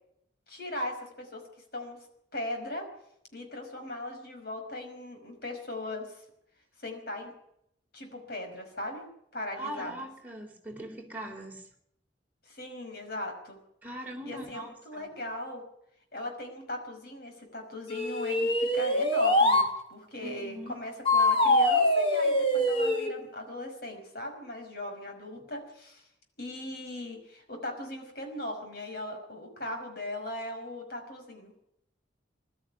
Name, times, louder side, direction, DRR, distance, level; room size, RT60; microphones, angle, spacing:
voice 1, 0.5-1.4 1.7-2.1 2.3-2.9 3.3-6.2 6.8-7.3 7.9-9.1 9.3-10.0 12.5-13.6 14.2-15.7 16.1-19.6 19.9-26.0 26.4-31.5, left 1 dB, 55° left, 4 dB, 5.5 m, -38 dB
voice 2, 9.6-11.6 13.8-15.1 20.2-20.8, right 1 dB, 10° right, 0 dB, 3.7 m, -41 dB
sound 1, 17.9-19.7 21.1-23.1, left 1 dB, 30° left, 2.6 m, -24 dB
21.0 x 13.0 x 10.0 m, 0.76 s
head